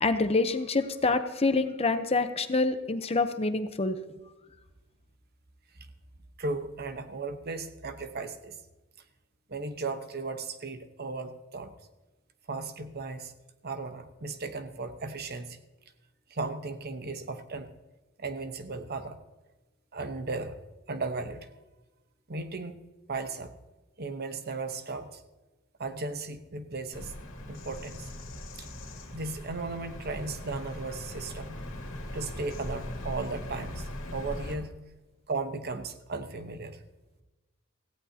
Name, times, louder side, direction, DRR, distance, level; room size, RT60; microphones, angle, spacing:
voice 1, 0.0-4.0, left 3 dB, 30° left, 9 dB, 0.8 m, -26 dB
voice 2, 6.4-8.6 9.5-11.7 12.5-13.3 13.6-15.6 16.3-17.7 18.2-19.2 19.9-20.6 20.9-21.5 22.3-22.7 23.1-23.5 24.0-25.2 25.8-27.1 27.5-28.1 28.6-28.7 29.1-31.6 32.1-34.8 35.3-36.8, right 3 dB, 50° right, 9 dB, 1.0 m, -36 dB
Bird vocalization bird call bird song, 26.9-34.5, left 1 dB, 65° left, 2.3 m, -40 dB
17.5 x 15.5 x 2.8 m, 1.1 s
head